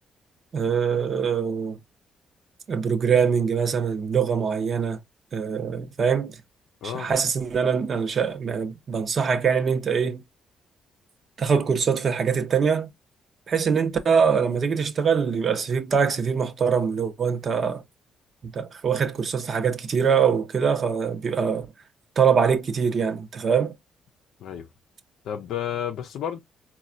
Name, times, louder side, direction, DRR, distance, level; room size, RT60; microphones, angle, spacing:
voice 1, 0.5-1.8 2.7-5.0 5.3-6.4 6.8-10.2 11.4-12.9 13.5-17.8 18.4-21.7 22.2-23.7, right 6 dB, 50° right, 0.7 m, -23 dB
voice 2, 25.3-26.4, left 9 dB, 80° left, 0.4 m, -31 dB
4.1 x 2.2 x 2.4 m
cardioid pair, 90°, 0 cm